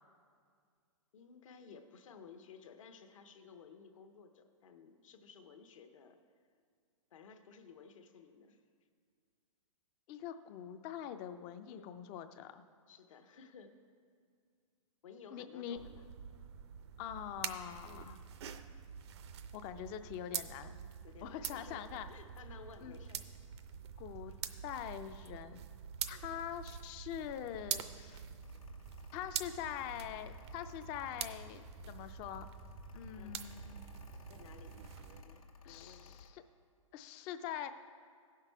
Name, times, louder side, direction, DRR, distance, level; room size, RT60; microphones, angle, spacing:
voice 1, 1.1-6.2 7.1-8.6 11.7-11.9 12.9-13.7 15.0-16.1 17.8-18.1 21.0-23.2 24.3-24.4 26.1-26.4 33.2-33.4 34.3-34.8 35.2-36.2, left 6 dB, 70° left, 7 dB, 0.9 m, -56 dB
voice 2, 10.1-12.6 15.3-15.8 17.0-18.2 19.5-20.8 21.2-22.1 22.8-22.9 24.0-24.3 24.6-25.6 26.1-28.3 29.1-32.5 32.9-33.8 35.6-36.4 36.9-37.7, left 10 dB, 25° left, 10 dB, 0.4 m, -44 dB
sound 1, 15.8-35.2, right 8 dB, 55° right, 0.5 m, -46 dB
Mechanical fan, 28.4-36.3, left 7 dB, 90° left, 1.2 m, -57 dB
15.5 x 5.9 x 4.5 m, 2.1 s
hypercardioid pair, 145°, 17 cm